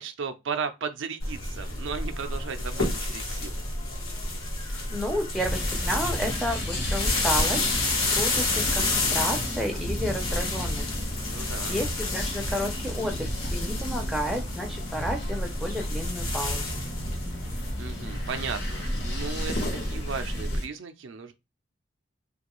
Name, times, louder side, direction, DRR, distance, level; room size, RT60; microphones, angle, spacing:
voice 1, 0.0-3.6 11.3-11.8 17.8-21.3, right 5 dB, 65° right, 0.4 m, -35 dB
sound 1, 1.2-20.6, left 2 dB, 90° left, 0.9 m, -30 dB
voice 2, 4.9-10.9 11.7-16.8, equal, ahead, 0.4 m, -32 dB
sound 2, 5.5-20.6, left 1 dB, 50° left, 0.8 m, -34 dB
2.6 x 2.3 x 2.9 m
head